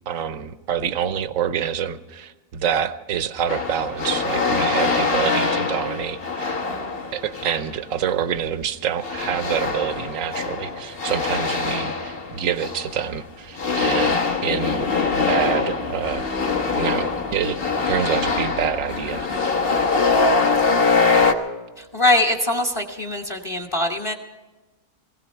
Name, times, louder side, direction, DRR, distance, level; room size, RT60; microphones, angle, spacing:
voice 1, 0.1-6.6 7.1-16.3 16.8-17.6 17.9-19.6, right 8 dB, 65° right, 13 dB, 1.1 m, -26 dB
sound 1, 3.5-7.7 9.0-13.2 13.6-21.3, left 4 dB, 40° left, 1.3 m, -23 dB
voice 2, 21.8-24.1, left 1 dB, 20° left, 3 dB, 1.0 m, -22 dB
19.5 x 16.0 x 4.5 m, 1.2 s
omnidirectional pair, 1.6 m